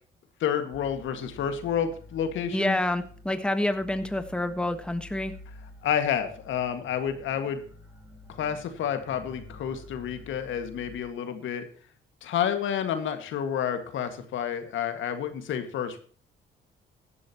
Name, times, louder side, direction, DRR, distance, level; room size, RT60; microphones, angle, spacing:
voice 1, 0.4-2.8 5.8-7.6 8.3-11.6 12.2-16.0, left 8 dB, 75° left, 8 dB, 2.0 m, -29 dB
sound 1, 0.7-11.0, left 2 dB, 15° right, 5.6 m, -49 dB
voice 2, 2.5-5.3, left 1 dB, 5° left, 9 dB, 1.4 m, -28 dB
16.0 x 12.0 x 3.0 m, 0.43 s
cardioid pair, 90°, 20 cm